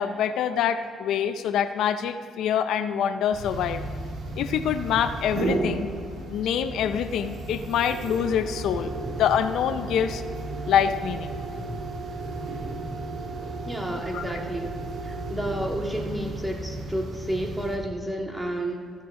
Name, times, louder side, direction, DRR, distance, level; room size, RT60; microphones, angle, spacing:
voice 1, 0.0-3.8 4.4-5.9 6.3-10.2 10.7-11.3 14.1-14.2, left 8 dB, 80° left, 10 dB, 0.6 m, -25 dB
sound 1, 3.3-17.8, right 2 dB, 70° right, 3.3 m, -34 dB
voice 2, 13.6-14.7 15.0-18.8, right 1 dB, 10° right, 0 dB, 2.0 m, -31 dB
14.5 x 12.0 x 3.7 m, 2.2 s
cardioid pair, 90°, 0 cm